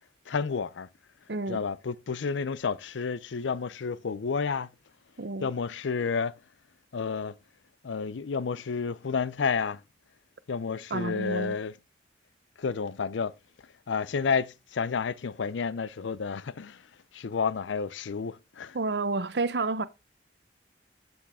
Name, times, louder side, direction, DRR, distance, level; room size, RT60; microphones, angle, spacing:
voice 1, 0.3-0.9 1.5-4.7 5.4-6.3 6.9-7.4 7.8-9.8 10.5-11.8 12.6-13.3 13.9-16.9 17.1-18.8, left 5 dB, 85° left, 0.5 m, -30 dB
voice 2, 1.3-1.6 5.2-5.5 10.9-11.6 18.7-19.9, right 3 dB, 60° right, 0.7 m, -30 dB
11.5 x 7.1 x 3.5 m
head